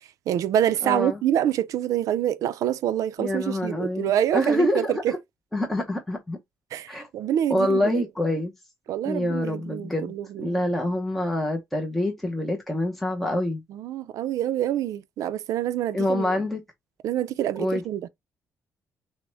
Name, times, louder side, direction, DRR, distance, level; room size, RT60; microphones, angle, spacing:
voice 1, 0.3-5.2 6.7-8.1 8.9-10.6 13.7-16.4 17.0-18.1, right 11 dB, 70° right, 0.4 m, -26 dB
voice 2, 0.8-1.2 3.2-5.2 5.5-6.4 6.9-7.1 7.5-8.5 9.0-13.6 15.9-16.6 17.6-17.8, left 1 dB, 5° left, 0.6 m, -26 dB
6.1 x 2.1 x 3.2 m
cardioid pair, 165°, 6 cm